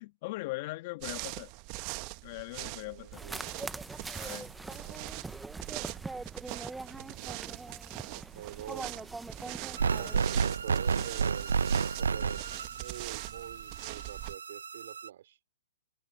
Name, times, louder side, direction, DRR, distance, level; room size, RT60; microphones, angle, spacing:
voice 1, 0.0-1.5 2.2-3.2 4.2-4.5, left 21 dB, 45° left, 1.5 m, -40 dB
sound 1, 1.0-14.3, right 25 dB, 35° right, 1.2 m, -42 dB
voice 2, 2.8-3.6 4.6-5.1 6.9-7.7 8.0-9.1 10.0-11.5 12.0-15.4, right 12 dB, 60° right, 4.4 m, -46 dB
sound 2, 3.1-10.4, right 3 dB, 5° right, 0.8 m, -42 dB
sound 3, 9.8-15.1, right 5 dB, 85° right, 0.7 m, -31 dB
hypercardioid pair, 135°, 0 cm